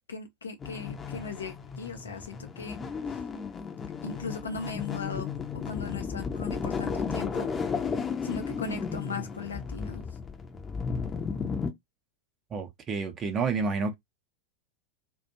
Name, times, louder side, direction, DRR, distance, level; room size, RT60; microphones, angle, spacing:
voice 1, 0.1-2.8 4.0-7.8 8.2-10.0, left 5 dB, 70° left, 0.6 m, -38 dB
sound 1, 0.6-11.7, left 5 dB, 20° left, 0.7 m, -34 dB
voice 2, 12.5-13.9, right 4 dB, 25° right, 0.6 m, -29 dB
2.5 x 2.2 x 2.8 m
figure-of-eight pair, 90°, 0 cm